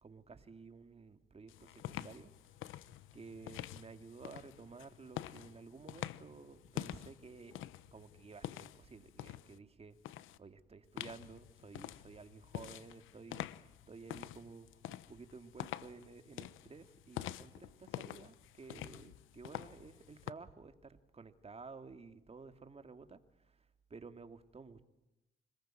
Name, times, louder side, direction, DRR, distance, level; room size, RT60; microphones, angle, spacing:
voice 1, 0.0-2.3 2.7-7.6 7.9-9.9 10.4-13.5 13.9-23.2 23.9-24.8, right 4 dB, 30° right, 8 dB, 2.4 m, -53 dB
sound 1, 1.5-9.6 10.0-10.4 11.0-20.3, left 13 dB, 90° left, 1.0 m, -47 dB
26.5 x 20.5 x 9.1 m, 0.95 s
cardioid pair, 90°, 20 cm